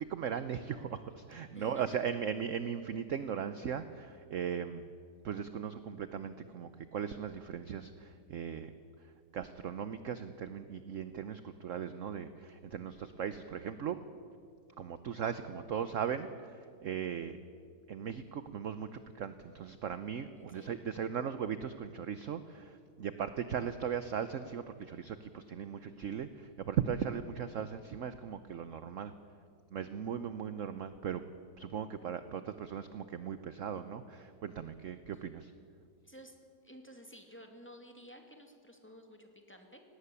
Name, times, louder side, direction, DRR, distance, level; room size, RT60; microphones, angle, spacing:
voice 1, 0.0-4.9 5.2-8.7 9.3-14.0 14.8-17.4 17.9-29.1 29.7-31.2 31.6-35.5, right 8 dB, 55° right, 11 dB, 0.9 m, -38 dB
voice 2, 1.5-2.0 20.4-20.8 35.1-35.3 36.0-36.4 36.6-39.8, equal, 5° left, 3 dB, 2.3 m, -53 dB
18.5 x 18.0 x 9.8 m, 2.2 s
omnidirectional pair, 2.0 m